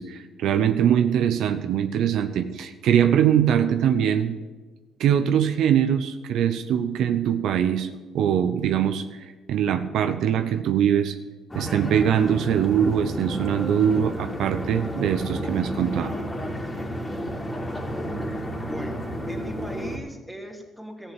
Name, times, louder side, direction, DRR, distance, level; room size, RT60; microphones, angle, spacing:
voice 1, 0.0-4.4 5.0-7.9 8.1-9.2 9.5-11.2 11.5-16.1, right 9 dB, 70° right, 9 dB, 0.7 m, -22 dB
sound 1, 11.5-20.0, equal, 20° left, 2.8 m, -31 dB
voice 2, 18.6-21.1, equal, ahead, 2 dB, 2.9 m, -38 dB
14.0 x 6.8 x 8.9 m, 1.3 s
supercardioid pair, 60°, 0 cm